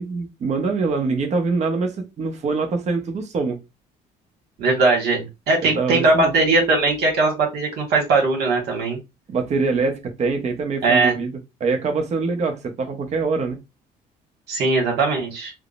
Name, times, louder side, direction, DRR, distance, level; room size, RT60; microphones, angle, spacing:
voice 1, 0.0-3.6 5.6-6.3 9.3-11.3 11.6-13.6, right 4 dB, 40° right, 0.8 m, -24 dB
voice 2, 4.6-9.0 10.8-11.2 14.5-15.5, right 3 dB, 70° right, 1.4 m, -19 dB
3.5 x 2.0 x 2.4 m
cardioid pair, 110°, 17 cm